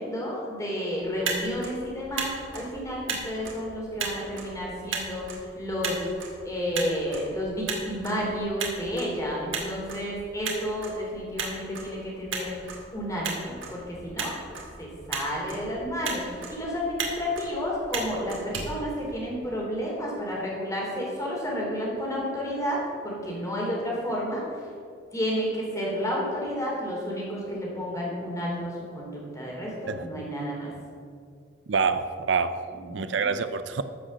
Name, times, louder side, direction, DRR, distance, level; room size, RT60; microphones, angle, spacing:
voice 1, 0.0-5.2 5.5-6.0 6.4-14.4 14.8-24.4 25.1-30.7 32.7-33.3, equal, 15° left, -4 dB, 3.2 m, -31 dB
Motor vehicle (road), 1.0-19.6, right 4 dB, 85° right, 2.2 m, -37 dB
voice 2, 31.7-32.6 32.9-33.8, right 5 dB, 65° right, 11 dB, 0.5 m, -26 dB
14.0 x 6.2 x 6.4 m, 2.3 s
head